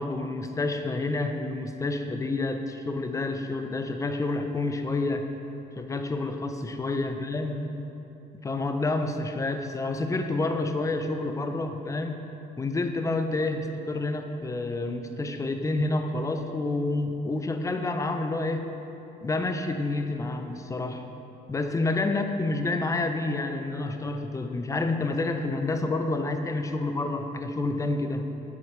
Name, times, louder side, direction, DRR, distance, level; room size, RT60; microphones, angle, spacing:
voice 1, 0.0-5.3 5.8-7.6 8.4-12.2 12.6-18.7 19.2-21.0 21.5-28.3, left 2 dB, 20° left, 6 dB, 0.5 m, -29 dB
7.1 x 6.4 x 4.6 m, 2.9 s
cardioid pair, 110°, 17 cm